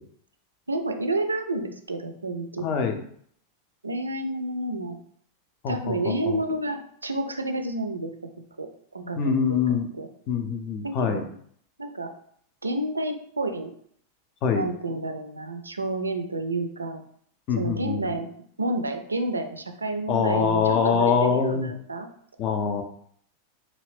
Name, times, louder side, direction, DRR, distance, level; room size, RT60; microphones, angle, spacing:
voice 1, 0.7-2.7 3.8-5.0 5.7-8.1 8.6-8.7 8.9-10.1 10.8-11.2 11.8-12.1 12.6-13.7 14.5-17.0 17.6-18.3 18.6-22.1, right 2 dB, 80° right, 6 dB, 0.4 m, -30 dB
voice 2, 2.6-3.0 5.6-6.4 9.2-9.9 10.3-11.2 14.4-14.7 17.5-18.2 20.1-21.7 22.4-22.8, left 6 dB, 40° left, 5 dB, 0.5 m, -24 dB
2.8 x 2.5 x 3.1 m, 0.63 s
figure-of-eight pair, 90°, 0 cm